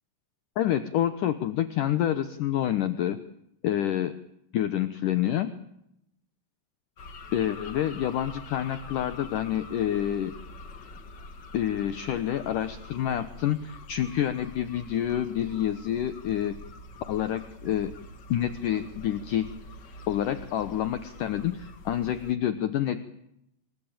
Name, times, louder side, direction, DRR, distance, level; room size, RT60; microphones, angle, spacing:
voice 1, 0.6-3.2 3.6-4.2 4.5-5.5 7.3-10.3 11.5-16.6 17.1-17.9 18.3-19.5 20.1-23.0, left 11 dB, 65° left, 11 dB, 2.4 m, -28 dB
sound 1, 7.0-22.3, left 2 dB, 45° left, 1.4 m, -45 dB
28.5 x 21.5 x 9.0 m, 0.80 s
omnidirectional pair, 4.5 m